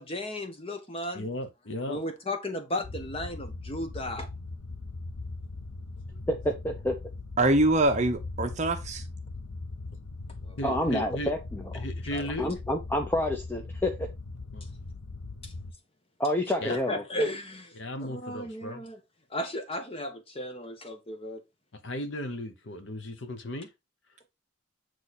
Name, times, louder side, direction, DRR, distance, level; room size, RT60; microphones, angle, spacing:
voice 1, 0.0-1.3 1.9-4.3 10.4-10.6 12.1-12.5 15.4-15.5 16.7-17.7 18.0-19.0 19.3-21.4, left 1 dB, 25° left, 0.9 m, -35 dB
voice 2, 1.1-2.0 10.6-11.3 11.7-12.5 14.5-14.7 16.6-16.8 17.8-18.8 21.7-23.7, left 1 dB, 55° left, 0.9 m, -36 dB
sound 1, 2.8-15.7, left 3 dB, 90° left, 0.8 m, -40 dB
voice 3, 6.3-7.0 10.6-11.8 12.4-14.1 16.2-17.0, left 1 dB, 10° left, 0.5 m, -29 dB
voice 4, 7.4-9.0, right 2 dB, 35° right, 0.8 m, -24 dB
8.2 x 3.2 x 4.2 m
head